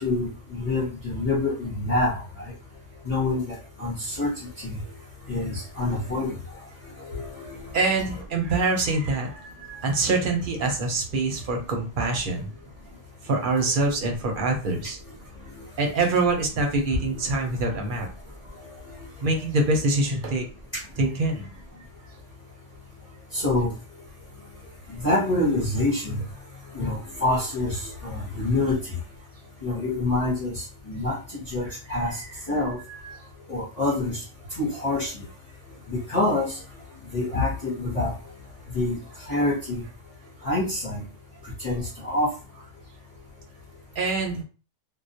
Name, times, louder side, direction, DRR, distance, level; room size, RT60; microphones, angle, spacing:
voice 1, 0.0-2.2 3.0-4.3 4.6-4.8 5.3-6.3 7.1-7.2 23.3-23.7 25.0-26.2 26.7-28.9 29.6-30.5 30.9-31.2 31.5-32.2 32.5-32.8 33.5-34.2 34.6-35.2 35.9-36.6 37.1-38.1 38.7-39.0 39.3-39.8 40.4-41.0 41.6-42.3, left 2 dB, 35° left, -6 dB, 0.8 m, -26 dB
voice 2, 7.7-12.5 13.2-15.0 15.8-18.1 19.2-20.5 21.0-21.5 33.0-33.2 44.0-44.4, right 3 dB, 55° right, 2 dB, 0.6 m, -25 dB
2.3 x 2.1 x 2.7 m, 0.35 s
omnidirectional pair, 1.3 m